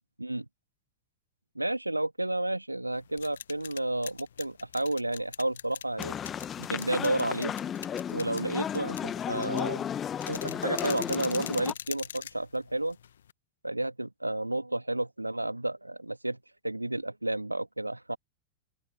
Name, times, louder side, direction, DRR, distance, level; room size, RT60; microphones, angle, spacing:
voice 1, 1.5-6.1 6.6-7.5 8.1-9.9 10.3-13.0 13.6-18.2, right 1 dB, 85° right, 2.5 m, -31 dB
sound 1, 2.9-13.3, left 9 dB, 65° left, 1.4 m, -43 dB
sound 2, 6.0-11.7, left 9 dB, 25° left, 1.4 m, -34 dB
open air
figure-of-eight pair, 90°, 0 cm